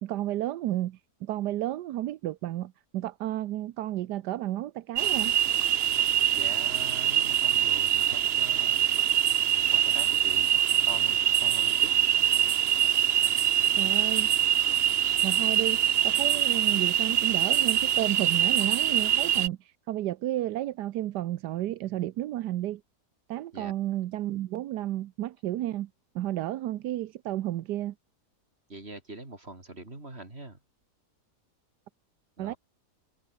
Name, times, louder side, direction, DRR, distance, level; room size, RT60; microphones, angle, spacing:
voice 1, 0.0-5.3 13.8-14.3 15.2-22.8 23.3-25.9 26.1-27.9 32.4-32.5, right 14 dB, 85° right, 1.3 m, -32 dB
sound 1, 5.0-19.5, right 10 dB, 65° right, 0.6 m, -24 dB
voice 2, 6.4-8.8 9.7-11.9 23.5-23.7 28.7-30.6 32.4-32.6, right 2 dB, 40° right, 5.1 m, -43 dB
omnidirectional pair, 1.8 m